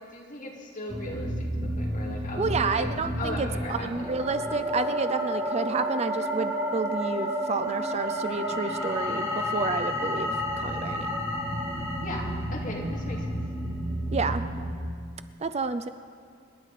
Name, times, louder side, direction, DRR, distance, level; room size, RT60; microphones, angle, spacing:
voice 1, 0.0-2.9 3.2-4.1 12.0-13.4, left 1 dB, 45° left, -1 dB, 2.4 m, -38 dB
sound 1, 0.9-14.7, equal, 20° right, 3.0 m, -31 dB
voice 2, 2.4-11.1 14.1-14.4 15.4-15.9, right 4 dB, 35° right, 11 dB, 0.5 m, -30 dB
26.5 x 11.0 x 4.2 m, 2.2 s
head